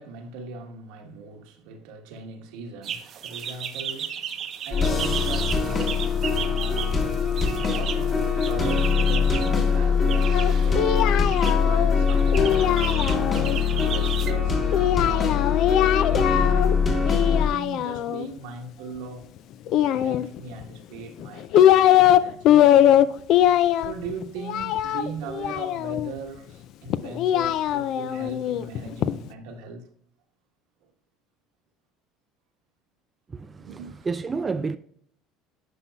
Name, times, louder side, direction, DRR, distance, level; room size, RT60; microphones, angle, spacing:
voice 1, 0.0-4.2 4.6-6.0 6.2-7.1 7.7-12.6 13.2-15.6 16.0-19.3 19.8-22.7 23.8-29.9 30.8-30.9 33.6-34.1, right 4 dB, 80° right, 1.3 m, -39 dB
sound 1, 2.8-9.5 10.1-10.8 11.2-11.5 12.1-14.3, right 9 dB, 45° right, 0.8 m, -34 dB
sound 2, 4.7-17.5, left 5 dB, 30° left, 1.7 m, -23 dB
Singing, 10.3-13.6 14.7-16.7 17.0-18.3 19.7-20.6 21.2-22.2 22.4-26.1 26.9-29.1, left 11 dB, 55° left, 0.4 m, -21 dB
voice 2, 33.3-33.8 34.1-34.8, right 4 dB, 20° right, 0.3 m, -29 dB
9.6 x 5.6 x 2.3 m
cardioid pair, 120°, 0 cm